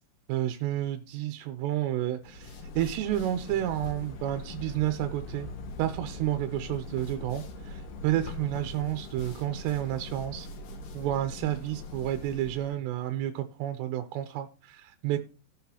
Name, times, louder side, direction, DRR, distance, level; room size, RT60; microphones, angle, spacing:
voice 1, 0.3-5.5 5.8-10.5 10.9-15.2, right 13 dB, 85° right, 8 dB, 2.8 m, -30 dB
sound 1, 2.2-12.7, left 2 dB, 65° left, 2.3 m, -41 dB
17.0 x 5.8 x 2.8 m, 0.34 s
omnidirectional pair, 4.9 m